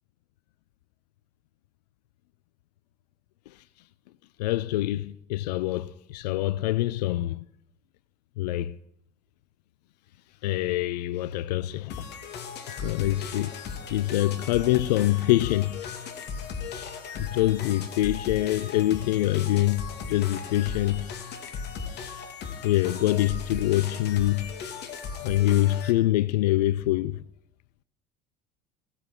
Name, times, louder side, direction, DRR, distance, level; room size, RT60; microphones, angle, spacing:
voice 1, 4.4-7.4 8.4-8.8 10.4-11.9 12.8-13.5 13.9-15.8 17.2-21.1 22.6-24.5 25.2-27.1, left 15 dB, 80° left, 0.5 m, -25 dB
sound 1, 11.9-25.9, left 5 dB, 55° left, 2.8 m, -37 dB
18.5 x 9.9 x 7.4 m
hypercardioid pair, 70°, 21 cm